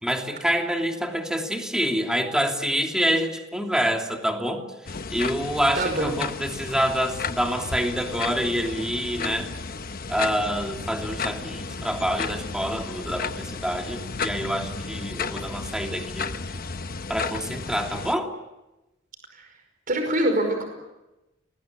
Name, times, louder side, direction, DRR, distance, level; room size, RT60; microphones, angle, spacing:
voice 1, 0.0-4.6 5.1-9.5 10.1-16.3 17.1-18.3, equal, 5° right, 2 dB, 3.0 m, -27 dB
sound 1, 4.9-18.2, left 4 dB, 50° left, 1.0 m, -33 dB
voice 2, 5.8-6.1 19.9-20.6, right 1 dB, 45° right, 5 dB, 5.2 m, -23 dB
29.0 x 21.0 x 8.5 m, 1.0 s
head